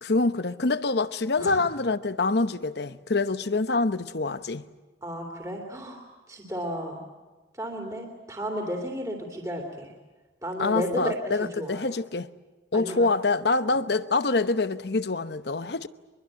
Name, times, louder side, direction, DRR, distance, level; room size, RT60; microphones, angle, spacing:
voice 1, 0.0-4.6 10.6-12.3 12.7-15.9, left 3 dB, 60° left, 0.9 m, -26 dB
voice 2, 5.0-6.0 6.3-7.0 7.5-9.9 10.4-11.9 12.7-13.1 13.7-13.8, equal, 20° right, 2.9 m, -33 dB
24.0 x 23.0 x 8.8 m
head